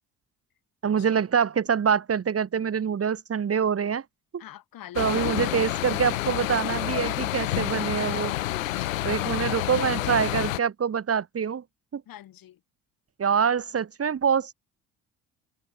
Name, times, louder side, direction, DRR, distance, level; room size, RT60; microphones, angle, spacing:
voice 1, 0.8-4.0 5.0-8.3 9.0-11.6 11.9-12.0 13.2-14.5, right 7 dB, 40° right, 1.9 m, -25 dB
voice 2, 4.4-5.5 8.1-10.4 12.1-12.6, left 12 dB, 60° left, 6.3 m, -44 dB
sound 1, 4.9-10.6, left 15 dB, 90° left, 2.3 m, -29 dB
hypercardioid pair, 60°, 38 cm